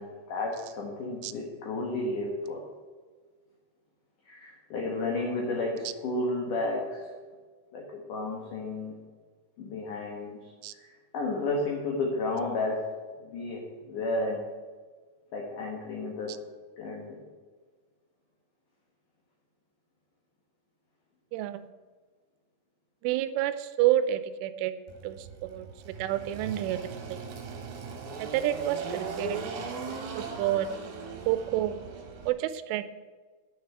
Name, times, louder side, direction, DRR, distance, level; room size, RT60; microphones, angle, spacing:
voice 1, 0.0-2.6 4.3-7.1 7.7-9.0 9.6-10.4 10.8-12.9 13.2-14.4 15.3-16.3 16.8-17.2, left 2 dB, 60° left, -2 dB, 2.3 m, -32 dB
voice 2, 21.3-21.7 23.0-24.7 25.0-27.2 28.2-29.4 30.2-30.7 31.3-31.8 32.3-32.8, right 13 dB, 85° right, 12 dB, 3.1 m, -29 dB
Engine, 24.9-32.3, right 4 dB, 60° right, 3.3 m, -39 dB
9.7 x 6.8 x 8.0 m, 1.4 s
omnidirectional pair, 5.6 m